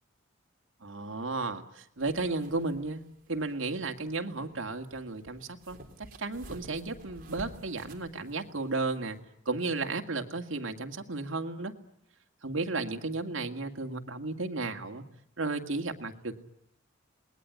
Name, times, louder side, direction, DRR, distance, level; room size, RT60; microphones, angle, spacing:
voice 1, 0.8-3.0 3.3-9.2 9.5-11.7 12.4-15.0 15.4-16.3, right 3 dB, 80° right, 4 dB, 2.2 m, -34 dB
sound 1, 2.0-9.2, right 1 dB, 45° right, 3.7 m, -52 dB
28.0 x 20.5 x 9.6 m, 0.81 s
head